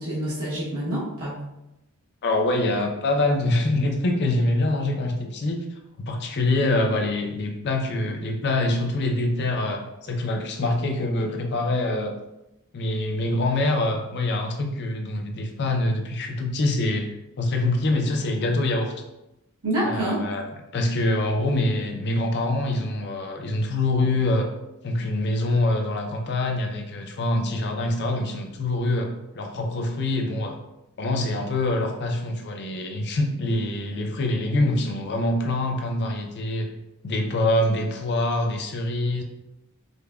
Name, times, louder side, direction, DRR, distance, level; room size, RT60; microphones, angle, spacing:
voice 1, 0.0-1.4 19.6-20.2, right 1 dB, 80° right, -8 dB, 1.0 m, -27 dB
voice 2, 2.2-5.6 6.1-12.1 12.7-17.1 17.4-18.9 19.8-20.4 20.7-24.5 24.8-30.6 31.0-36.7 37.0-39.2, left 2 dB, 50° left, 3 dB, 0.5 m, -25 dB
5.2 x 2.2 x 2.3 m, 0.91 s
head